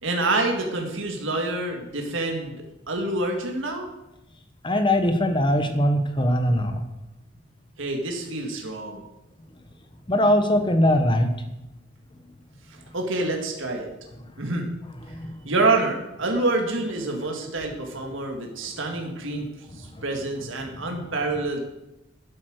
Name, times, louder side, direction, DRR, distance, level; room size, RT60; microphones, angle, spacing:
voice 1, 0.0-3.9 7.8-9.0 12.9-13.9 14.4-14.7 15.4-21.6, right 2 dB, 65° right, 2 dB, 2.1 m, -27 dB
voice 2, 4.6-6.8 10.1-11.3 15.1-15.3, left 1 dB, 25° left, 7 dB, 1.0 m, -21 dB
12.5 x 8.4 x 6.5 m, 0.93 s
head